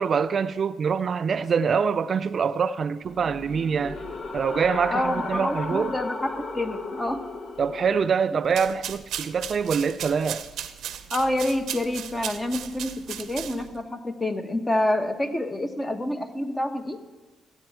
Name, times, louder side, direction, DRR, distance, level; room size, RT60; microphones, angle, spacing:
voice 1, 0.0-4.0 4.3-5.9 7.6-10.5, right 6 dB, 50° right, 0.3 m, -25 dB
sound 1, 3.0-8.2, left 3 dB, 45° left, 1.1 m, -35 dB
voice 2, 4.9-7.2 11.1-17.0, left 1 dB, 15° left, 1.0 m, -27 dB
sound 2, 8.4-13.8, right 10 dB, 75° right, 0.7 m, -36 dB
14.5 x 8.8 x 4.6 m
cardioid pair, 90°, 0 cm